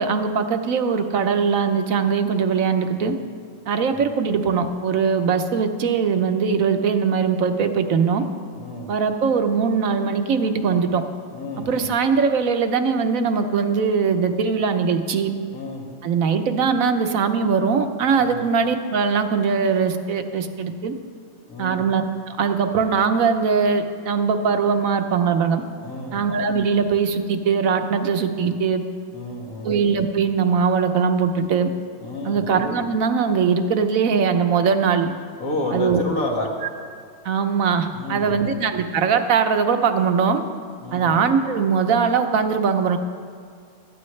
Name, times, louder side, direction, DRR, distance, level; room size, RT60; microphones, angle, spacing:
voice 1, 0.0-3.1 3.7-8.3 8.9-11.0 11.6-15.3 16.0-20.9 21.6-25.6 26.1-28.8 29.6-31.7 32.2-35.1 35.7-36.0 37.2-40.4 40.9-43.0, right 6 dB, 75° right, 7 dB, 1.2 m, -21 dB
voice 2, 8.6-8.9 11.3-11.9 15.5-15.8 18.2-18.4 21.5-21.8 25.8-26.2 29.1-29.7 32.0-32.5 35.4-36.5 37.9-38.5 40.8-41.1, left 2 dB, 85° left, -1 dB, 2.5 m, -30 dB
17.0 x 13.0 x 3.2 m, 2.2 s
omnidirectional pair, 1.4 m